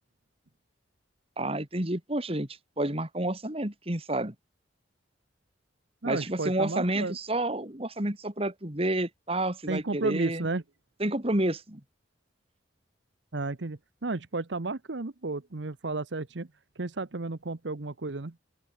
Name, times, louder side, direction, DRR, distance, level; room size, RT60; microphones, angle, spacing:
voice 1, 1.4-2.5 2.8-4.3 6.0-10.5 11.0-11.8, right 1 dB, 30° right, 2.6 m, -29 dB
voice 2, 6.0-7.2 9.7-10.6 13.3-16.5 16.8-18.3, right 3 dB, 70° right, 1.0 m, -33 dB
open air
head